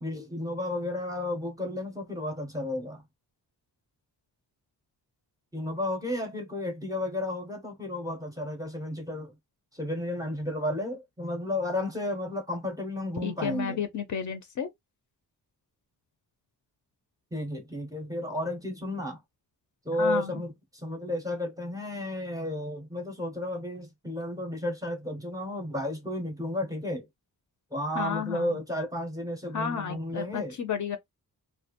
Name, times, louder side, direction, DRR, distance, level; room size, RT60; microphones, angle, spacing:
voice 1, 0.0-3.0 5.5-9.3 9.7-13.9 17.3-19.2 19.8-27.1 27.7-30.6, left 1 dB, 10° right, 0.5 m, -33 dB
voice 2, 13.2-14.7 20.0-20.3 27.9-28.5 29.5-31.0, left 7 dB, 50° left, 0.5 m, -32 dB
2.3 x 2.1 x 2.8 m
wide cardioid pair, 170°, 39 cm